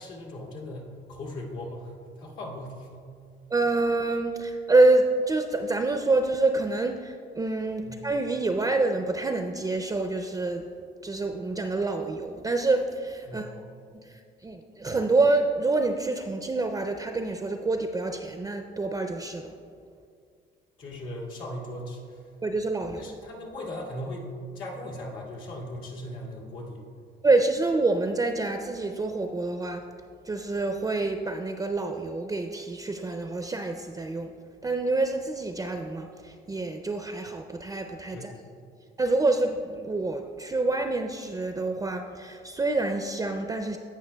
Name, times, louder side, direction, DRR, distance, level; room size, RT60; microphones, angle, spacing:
voice 1, 0.0-3.1 7.8-8.0 13.3-13.6 20.8-22.3 23.0-26.8 38.1-38.3, left 1 dB, 90° left, -4 dB, 2.0 m, -38 dB
voice 2, 3.5-10.7 11.0-13.5 13.9-19.5 22.4-23.1 27.2-29.8 30.2-34.3 34.6-38.3 39.0-43.8, right 2 dB, 20° right, 5 dB, 0.4 m, -27 dB
16.5 x 5.6 x 2.2 m, 2.3 s
cardioid pair, 90°, 20 cm